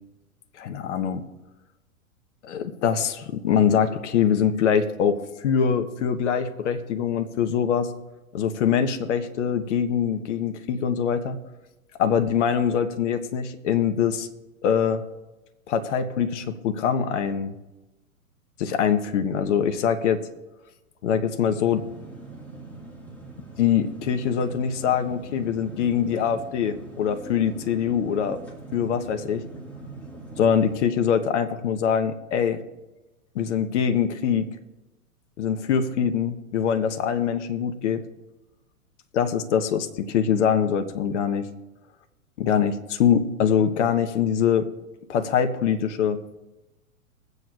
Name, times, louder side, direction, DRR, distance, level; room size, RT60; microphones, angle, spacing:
voice 1, 0.6-1.3 2.4-7.9 8.3-11.4 12.0-14.3 14.6-15.1 15.7-17.5 18.6-20.2 21.0-21.8 23.6-28.4 28.7-29.4 30.4-32.6 33.3-34.5 35.4-38.0 39.1-41.5 42.4-44.7 45.1-46.4, left 7 dB, 55° left, 8 dB, 0.9 m, -23 dB
sound 1, 21.6-30.8, right 3 dB, 5° left, 1.9 m, -41 dB
22.0 x 7.9 x 2.4 m, 1.1 s
figure-of-eight pair, 105°, 43 cm